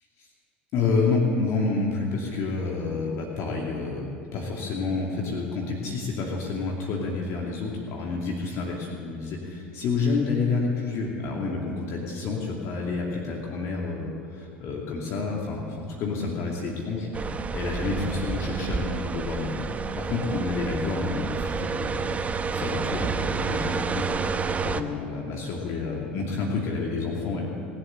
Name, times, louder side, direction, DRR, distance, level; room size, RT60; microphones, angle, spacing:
voice 1, 0.7-17.1 17.5-19.5 20.0-22.2 22.5-24.0 24.6-27.5, left 4 dB, 55° left, -1 dB, 2.5 m, -29 dB
sound 1, 17.1-24.8, right 5 dB, 25° right, 0.8 m, -29 dB
20.0 x 7.7 x 9.0 m, 2.4 s
hypercardioid pair, 75°, 6 cm